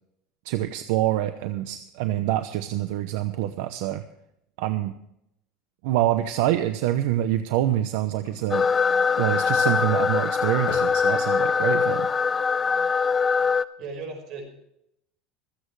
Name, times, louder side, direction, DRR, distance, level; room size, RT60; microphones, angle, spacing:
voice 1, 0.4-4.0 4.6-4.9 5.8-8.7 9.2-12.1, right 13 dB, 70° right, 10 dB, 0.8 m, -26 dB
sound 1, 8.1-11.2 11.8-11.9 13.3-13.4, left 14 dB, 70° left, 0.9 m, -40 dB
sound 2, 8.5-13.6, left 5 dB, 15° left, 0.4 m, -22 dB
voice 2, 13.8-14.4, right 4 dB, 45° right, 4 dB, 5.2 m, -36 dB
26.0 x 8.8 x 3.3 m, 0.79 s
cardioid pair, 165°, 0 cm